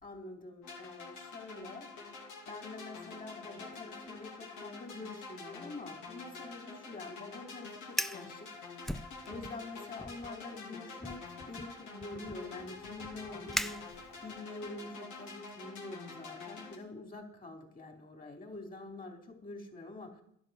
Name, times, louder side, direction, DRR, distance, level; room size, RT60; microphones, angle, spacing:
voice 1, 0.0-1.9 2.5-8.5 9.3-20.2, left 2 dB, 30° left, 3 dB, 3.3 m, -46 dB
sound 1, 0.6-16.8, left 4 dB, 85° left, 3.1 m, -47 dB
Fire, 7.8-8.3 8.8-9.6 10.0-10.3 11.0-14.4, equal, ahead, 0.5 m, -40 dB
11.0 x 11.0 x 6.4 m, 0.70 s
cardioid pair, 90°, 30 cm